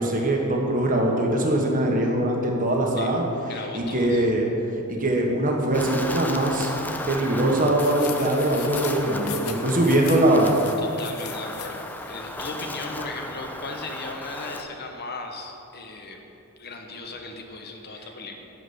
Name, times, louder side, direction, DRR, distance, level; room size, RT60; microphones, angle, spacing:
voice 1, 0.0-3.2 3.7-4.5 4.9-6.7 7.1-10.5, right 1 dB, 40° right, 0 dB, 1.4 m, -22 dB
voice 2, 3.5-4.3 10.8-16.2 16.6-18.4, left 3 dB, 50° left, 3 dB, 1.1 m, -37 dB
Wind, 5.7-14.6, left 1 dB, 10° left, 0.5 m, -35 dB
sound 1, 7.8-12.8, left 9 dB, 85° left, 0.8 m, -40 dB
11.0 x 5.1 x 8.2 m, 2.9 s
head